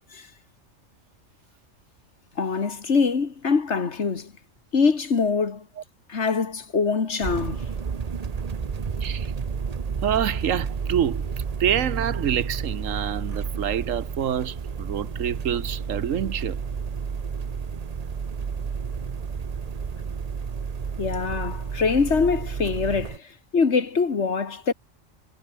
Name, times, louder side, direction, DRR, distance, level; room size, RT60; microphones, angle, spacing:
voice 1, 2.4-4.3 4.7-5.6 6.1-7.6 21.0-23.2 23.5-24.7, left 5 dB, 65° left, 2.1 m, -23 dB
sound 1, 7.2-23.2, right 6 dB, 35° right, 0.8 m, -31 dB
voice 2, 9.0-9.3 10.0-11.3 11.6-16.6, right 9 dB, 90° right, 1.4 m, -26 dB
omnidirectional pair, 1.3 m